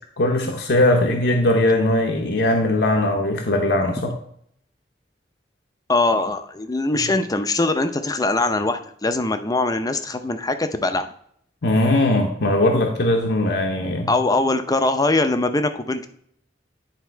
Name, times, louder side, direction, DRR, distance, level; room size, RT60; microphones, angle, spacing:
voice 1, 0.2-4.1 11.6-14.1, left 1 dB, 65° left, 2 dB, 0.9 m, -20 dB
voice 2, 5.9-11.1 14.1-16.1, left 2 dB, 20° left, 9 dB, 0.6 m, -22 dB
10.0 x 3.6 x 4.6 m, 0.66 s
head